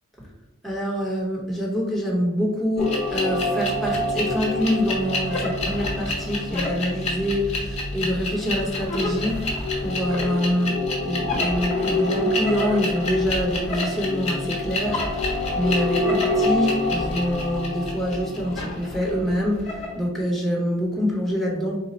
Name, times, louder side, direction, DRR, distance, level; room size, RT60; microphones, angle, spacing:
voice 1, 0.6-21.8, equal, ahead, -4 dB, 0.9 m, -26 dB
sound 1, 2.8-20.0, left 2 dB, 30° left, 1.1 m, -26 dB
4.2 x 2.2 x 4.0 m, 1.0 s
head